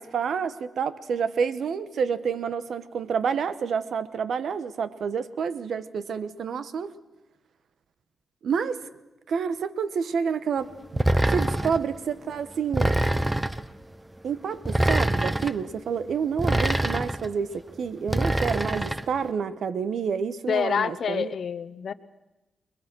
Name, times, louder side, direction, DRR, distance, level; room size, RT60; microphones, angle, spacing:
voice 1, 0.0-6.9 8.4-8.8 9.3-10.7 11.3-13.0 14.2-21.3, right 6 dB, 75° right, 14 dB, 1.1 m, -28 dB
sound 1, 11.0-11.8 12.7-13.7 14.7-15.5 16.4-17.3 18.1-19.1, right 1 dB, 10° right, 0.8 m, -24 dB
voice 2, 20.5-21.9, left 7 dB, 65° left, 15 dB, 0.8 m, -27 dB
29.5 x 21.5 x 6.2 m, 1.0 s
cardioid pair, 100°, 0 cm